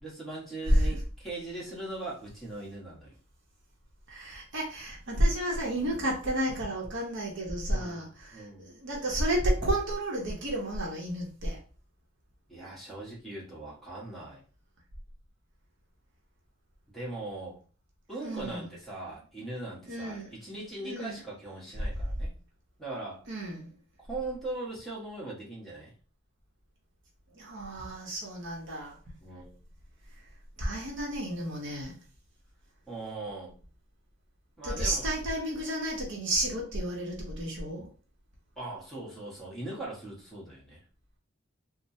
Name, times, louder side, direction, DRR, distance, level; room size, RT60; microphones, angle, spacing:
voice 1, 0.0-3.2 7.7-8.1 8.3-8.7 12.5-14.4 16.9-17.6 18.1-22.3 22.8-23.2 24.1-25.9 29.2-29.5 32.9-33.6 34.6-35.1 38.6-40.8, right 2 dB, ahead, 1.0 m, -40 dB
voice 2, 4.1-11.6 18.2-18.7 19.8-20.3 20.8-21.2 23.3-23.7 27.3-29.0 30.6-32.0 34.6-37.9, right 1 dB, 60° right, 0.8 m, -31 dB
3.1 x 2.0 x 2.7 m
head